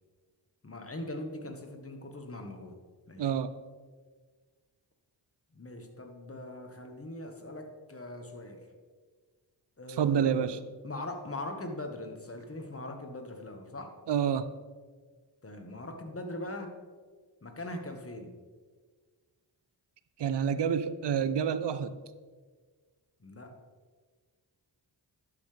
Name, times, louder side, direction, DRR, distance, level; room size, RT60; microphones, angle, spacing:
voice 1, 0.6-2.8 3.1-3.3 5.5-8.7 9.8-10.6 10.8-13.9 15.4-16.7 17.4-18.3 23.2-23.5, left 1 dB, 30° left, 4 dB, 1.4 m, -41 dB
voice 2, 3.2-3.5 10.0-10.6 14.1-14.5 20.2-22.0, right 8 dB, 60° right, 14 dB, 0.6 m, -28 dB
11.5 x 5.8 x 3.4 m, 1.5 s
cardioid pair, 50°, 46 cm